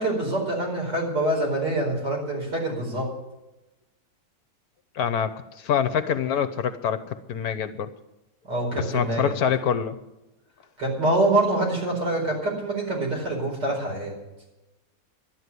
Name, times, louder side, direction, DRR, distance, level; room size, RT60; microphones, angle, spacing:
voice 1, 0.0-3.1 8.4-9.4 10.8-14.1, right 2 dB, 75° right, -1 dB, 5.3 m, -25 dB
voice 2, 4.9-7.9 8.7-10.0, left 8 dB, 65° left, 11 dB, 1.1 m, -26 dB
12.0 x 9.4 x 9.8 m, 1.0 s
omnidirectional pair, 1.9 m